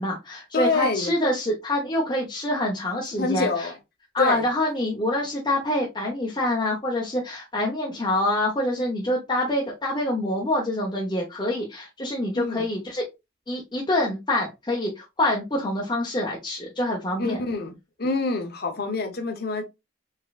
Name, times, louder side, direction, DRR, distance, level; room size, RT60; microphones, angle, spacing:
voice 1, 0.0-3.7 4.1-13.0 13.5-17.4, left 1 dB, 25° left, 0.8 m, -26 dB
voice 2, 0.5-1.1 3.2-3.8 4.2-4.4 12.3-12.7 17.2-17.7 18.0-19.6, left 3 dB, 50° left, 0.8 m, -26 dB
4.1 x 3.6 x 2.4 m
head